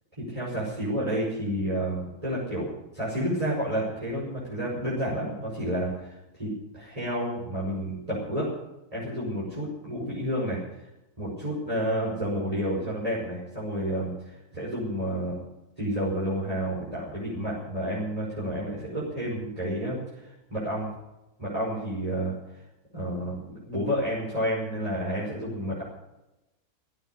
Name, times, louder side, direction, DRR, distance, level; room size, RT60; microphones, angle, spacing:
voice 1, 0.2-8.5 8.9-10.6 11.2-15.4 15.8-20.0 20.5-20.9 21.4-22.3 22.9-25.8, equal, 25° right, -8 dB, 5.7 m, -30 dB
15.5 x 9.1 x 9.7 m, 0.94 s
omnidirectional pair, 1.6 m